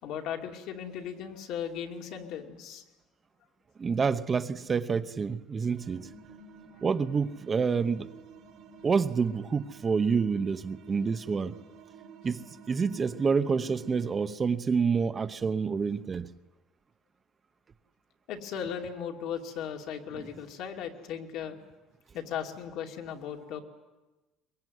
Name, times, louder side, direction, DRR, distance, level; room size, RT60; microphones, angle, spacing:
voice 1, 0.0-2.8 18.3-21.6 22.1-23.6, left 8 dB, 65° left, 2.7 m, -37 dB
voice 2, 3.8-6.1 6.8-8.1 8.8-11.6 12.2-16.3 20.1-20.3, right 5 dB, 25° right, 0.8 m, -28 dB
sound 1, 5.8-14.3, right 4 dB, 60° right, 1.7 m, -51 dB
23.0 x 22.0 x 9.4 m
cardioid pair, 135°, 0 cm